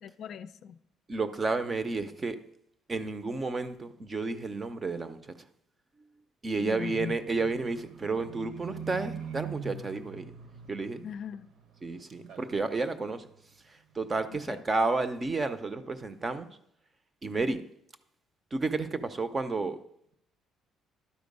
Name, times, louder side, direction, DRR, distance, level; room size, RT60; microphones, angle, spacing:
voice 1, 0.0-0.8 6.6-7.2 11.0-11.5 14.3-14.6, left 7 dB, 55° left, 11 dB, 0.4 m, -39 dB
voice 2, 1.1-2.4 2.9-5.3 6.4-10.2 10.7-11.0 11.8-13.3 13.9-16.5 17.2-17.6 18.5-19.8, right 3 dB, 25° right, 11 dB, 0.6 m, -31 dB
Livestock farm animals working animals, 7.1-11.8 12.1-12.8 13.3-13.4, right 6 dB, 60° right, 1.0 m, -43 dB
11.5 x 4.3 x 5.3 m, 0.75 s
cardioid pair, 130°, 0 cm